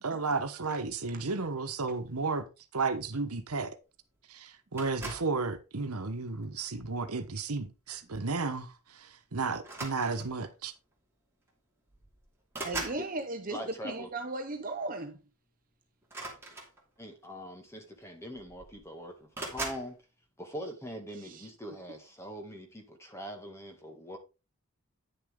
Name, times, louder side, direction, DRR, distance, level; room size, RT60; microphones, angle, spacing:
voice 1, 0.0-2.5 2.7-3.8 4.3-10.7, right 4 dB, 85° right, 1.2 m, -33 dB
sound 1, 4.8-5.4 6.3-6.6 8.1-8.2 8.5-8.7 9.6-10.5 11.5-11.6 11.9-13.1 16.0-17.1 18.0-18.1 18.3-18.9 19.3-19.9, right 2 dB, 10° right, 2.6 m, -40 dB
voice 2, 12.6-15.2 21.1-21.5, right 2 dB, 40° right, 0.8 m, -37 dB
voice 3, 13.5-14.1 17.0-20.0 20.4-24.2, equal, 10° left, 1.8 m, -42 dB
9.7 x 6.8 x 3.8 m
head